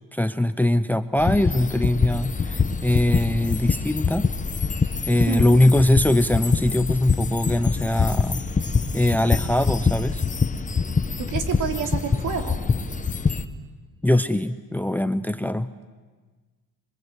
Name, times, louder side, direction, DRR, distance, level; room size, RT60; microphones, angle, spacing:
voice 1, 0.1-4.3 5.1-8.4 8.9-10.2 14.0-15.7, left 1 dB, 5° left, 13 dB, 0.7 m, -21 dB
sound 1, 1.2-13.4, left 4 dB, 25° left, 1.3 m, -24 dB
voice 2, 5.3-5.6 11.2-12.6, right 7 dB, 65° right, 4 dB, 3.2 m, -29 dB
27.0 x 23.0 x 8.2 m, 1.4 s
cardioid pair, 100°, 33 cm